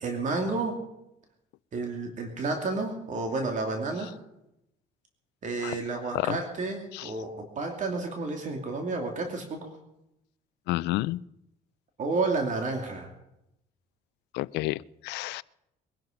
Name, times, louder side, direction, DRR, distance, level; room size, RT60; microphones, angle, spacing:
voice 1, 0.0-0.8 1.7-4.1 5.4-9.7 12.0-13.1, right 3 dB, 45° right, 3 dB, 2.6 m, -31 dB
voice 2, 10.7-11.2 14.3-15.4, left 18 dB, 85° left, 21 dB, 0.4 m, -30 dB
22.5 x 11.5 x 5.2 m, 0.88 s
cardioid pair, 110°, 17 cm